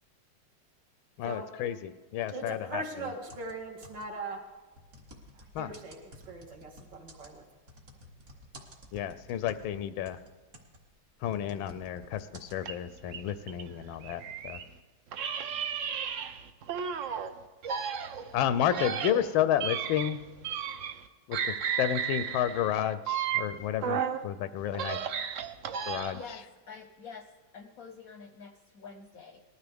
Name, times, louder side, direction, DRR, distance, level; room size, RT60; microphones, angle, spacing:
voice 1, 1.2-2.8 5.5-5.7 8.9-10.2 11.2-14.6 18.3-20.2 21.3-25.0 25.9-26.2, left 10 dB, 90° left, 13 dB, 1.4 m, -31 dB
voice 2, 2.3-4.4 5.3-6.0 6.3-7.4, right 3 dB, 65° right, 0 dB, 2.5 m, -40 dB
sound 1, 3.3-4.3 4.7-9.8 10.1-12.6, equal, 40° right, 1.7 m, -52 dB
sound 2, 12.6-14.7 15.1-17.3 17.6-21.1 21.3-24.2 24.6-26.3, right 8 dB, 85° right, 0.6 m, -34 dB
voice 3, 26.1-29.4, left 5 dB, 60° left, 5 dB, 0.9 m, -47 dB
19.5 x 13.0 x 3.5 m, 1.2 s
omnidirectional pair, 2.2 m